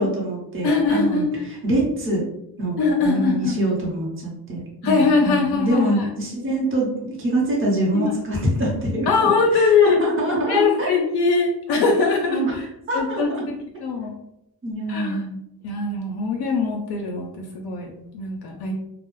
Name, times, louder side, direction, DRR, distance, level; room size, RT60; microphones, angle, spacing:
voice 1, 0.0-2.2 2.6-10.9 12.3-12.6 12.9-13.5 14.6-15.4, right 1 dB, 30° right, -3 dB, 0.8 m, -24 dB
voice 2, 0.6-1.5 2.8-3.6 4.8-6.1 7.9-8.1 9.1-10.0 10.5-12.7 12.9-14.1 14.9-15.2 15.6-18.7, left 4 dB, 65° left, 1 dB, 0.5 m, -21 dB
2.3 x 2.0 x 3.0 m, 0.82 s
cardioid pair, 105°, 42 cm